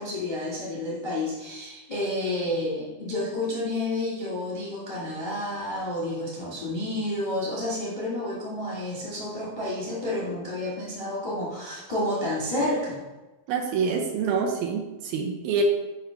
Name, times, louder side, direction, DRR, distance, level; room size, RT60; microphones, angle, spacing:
voice 1, 0.0-13.0, left 1 dB, 45° left, -7 dB, 0.5 m, -30 dB
voice 2, 13.5-15.6, right 5 dB, 80° right, 2 dB, 2.3 m, -26 dB
6.7 x 3.0 x 5.6 m, 1.1 s
omnidirectional pair, 4.5 m